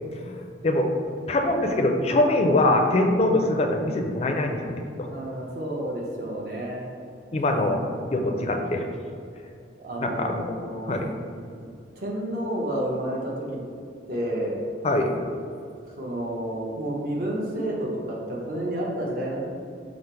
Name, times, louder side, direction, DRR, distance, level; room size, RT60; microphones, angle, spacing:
voice 1, 1.3-5.1 7.3-7.8 8.1-8.8 10.0-10.6 10.9-11.1 14.8-15.2, left 1 dB, 35° left, 3 dB, 0.4 m, -23 dB
voice 2, 5.1-6.9 9.8-11.0 11.6-11.7 12.0-13.5 14.1-14.6 16.0-19.4, right 1 dB, 50° right, -3 dB, 0.8 m, -30 dB
5.0 x 2.0 x 4.4 m, 2.3 s
head